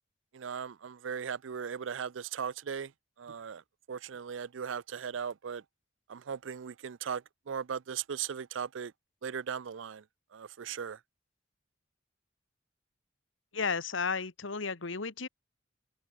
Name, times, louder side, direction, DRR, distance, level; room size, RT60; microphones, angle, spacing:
voice 1, 0.3-2.9 3.2-3.6 3.9-5.6 6.1-8.9 9.2-10.0 10.3-11.0, right 7 dB, 80° right, 0.5 m, -38 dB
voice 2, 13.5-15.3, left 5 dB, 85° left, 1.5 m, -33 dB
head